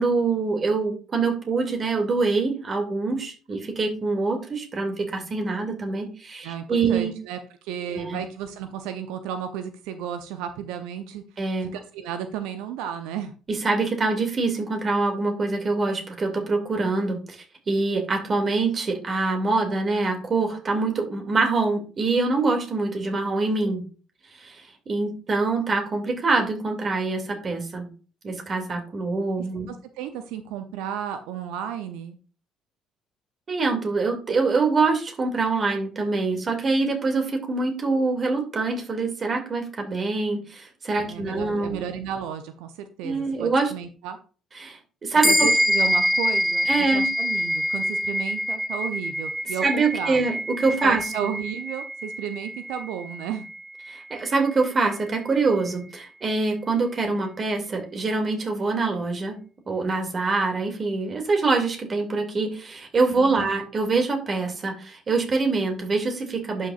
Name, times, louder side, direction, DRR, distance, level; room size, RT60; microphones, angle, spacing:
voice 1, 0.0-7.1 7.8-8.2 11.4-11.7 13.5-23.8 24.4-27.9 28.2-29.7 33.5-41.8 43.0-43.7 44.6-45.5 46.7-47.1 49.6-51.3 53.9-59.4 59.7-66.7, right 3 dB, 40° right, 4 dB, 2.5 m, -25 dB
voice 2, 6.4-11.2 11.6-13.3 29.7-32.2 41.0-44.2 45.2-50.3 50.8-53.5 63.1-63.5, right 9 dB, 70° right, 9 dB, 0.6 m, -33 dB
sound 1, 45.2-55.0, equal, ahead, 0.7 m, -26 dB
11.0 x 6.4 x 2.5 m, 0.38 s
hypercardioid pair, 55°, 0 cm